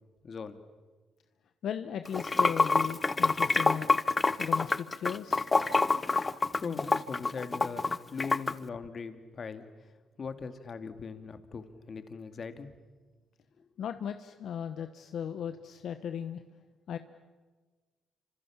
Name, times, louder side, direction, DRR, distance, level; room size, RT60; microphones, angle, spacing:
voice 1, 0.2-0.6 6.3-12.7 13.6-13.7, left 5 dB, 45° left, 9 dB, 2.3 m, -40 dB
voice 2, 1.6-3.9 4.4-5.5 13.8-16.4 16.9-17.0, left 8 dB, 70° left, 9 dB, 1.1 m, -37 dB
Water / Sink (filling or washing), 2.1-8.5, left 3 dB, 25° left, 0.8 m, -26 dB
28.0 x 26.0 x 7.3 m, 1.4 s
cardioid pair, 90°, 0 cm